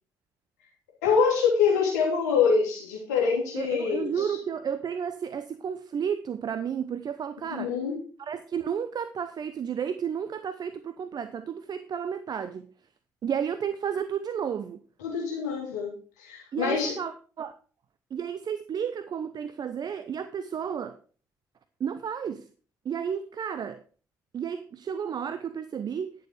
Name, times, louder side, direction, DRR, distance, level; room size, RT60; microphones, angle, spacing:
voice 1, 1.0-4.4 7.5-8.0 15.0-15.9 16.2-16.9, left 5 dB, 85° left, -2 dB, 3.3 m, -25 dB
voice 2, 3.6-7.7 8.2-12.6 13.2-14.8 16.5-17.1 17.4-17.6 18.1-21.0 21.8-22.4 22.8-23.8 24.3-26.1, right 7 dB, 50° right, 12 dB, 0.7 m, -32 dB
11.5 x 7.0 x 4.9 m, 0.39 s
hypercardioid pair, 45°, 9 cm